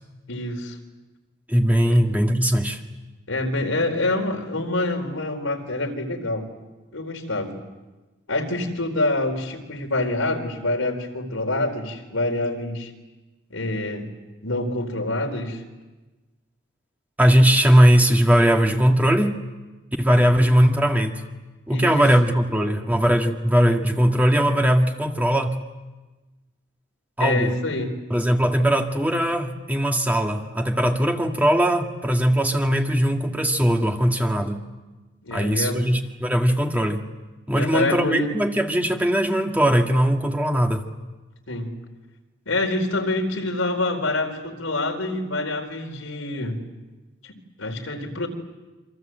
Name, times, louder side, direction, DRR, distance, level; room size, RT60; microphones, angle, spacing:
voice 1, 0.3-0.8 1.9-2.0 3.3-6.5 6.9-7.6 8.3-12.9 13.5-14.1 14.4-15.6 21.7-22.1 22.6-22.8 27.2-28.0 35.2-35.8 37.5-38.3 41.5-41.7 42.5-46.6 47.2-47.3 47.6-48.3, left 2 dB, 90° left, 2 dB, 4.5 m, -26 dB
voice 2, 1.5-2.8 17.2-19.4 20.0-21.2 21.7-25.5 27.2-27.5 28.1-34.6 35.3-37.0 37.5-40.9, equal, 10° right, 2 dB, 1.7 m, -19 dB
27.5 x 26.0 x 7.9 m, 1.2 s
head